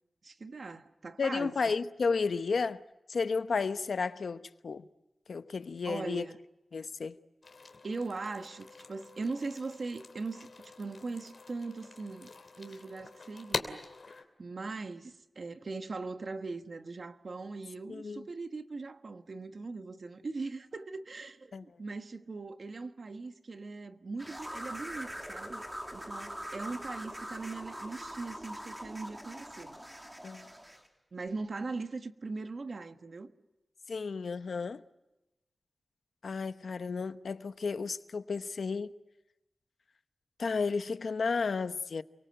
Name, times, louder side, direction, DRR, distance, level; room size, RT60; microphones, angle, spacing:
voice 1, 0.2-1.6 5.8-6.4 7.8-12.3 12.6-13.8 14.1-25.6 25.9-29.8 31.1-33.3, right 3 dB, 55° right, 1.4 m, -40 dB
voice 2, 1.2-2.8 3.1-4.8 5.3-6.3 6.7-7.2 17.9-18.2 21.5-21.6 30.2-30.5 33.9-34.8 36.2-38.9 40.4-42.0, left 4 dB, 75° left, 0.9 m, -32 dB
sound 1, 7.4-14.3, left 4 dB, 55° left, 2.8 m, -44 dB
sound 2, 24.2-30.9, equal, 10° right, 2.9 m, -43 dB
29.5 x 24.0 x 7.9 m
wide cardioid pair, 110°, 0 cm